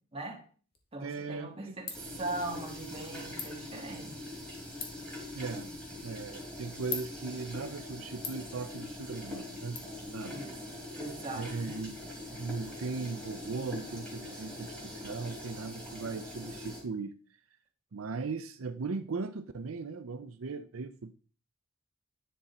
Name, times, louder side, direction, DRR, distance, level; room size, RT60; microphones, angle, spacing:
voice 1, 0.1-0.4 0.9-1.9 2.2-4.3 10.3-10.5 10.9-11.5, right 2 dB, 25° right, 2.1 m, -39 dB
Ratchet pawl, 0.7-9.8, left 6 dB, 50° left, 1.8 m, -47 dB
voice 2, 1.0-1.8 5.3-5.7 6.0-10.5 11.4-12.0 12.3-17.1 17.9-21.1, right 4 dB, 85° right, 0.6 m, -38 dB
sound 1, 1.9-16.8, left 1 dB, 5° left, 3.4 m, -43 dB
10.5 x 6.2 x 4.2 m
head